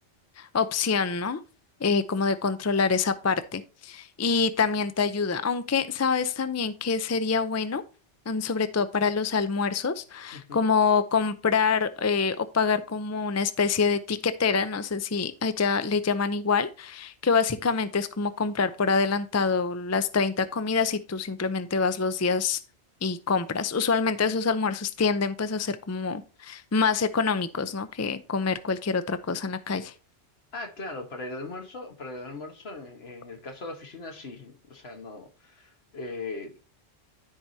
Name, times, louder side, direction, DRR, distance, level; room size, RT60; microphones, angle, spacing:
voice 1, 0.4-1.4 1.8-7.8 8.3-22.6 23.0-29.9, left 5 dB, 25° left, 0.3 m, -26 dB
voice 2, 10.3-10.6 30.5-36.5, left 2 dB, 65° left, 1.7 m, -39 dB
13.0 x 4.8 x 2.7 m
omnidirectional pair, 1.1 m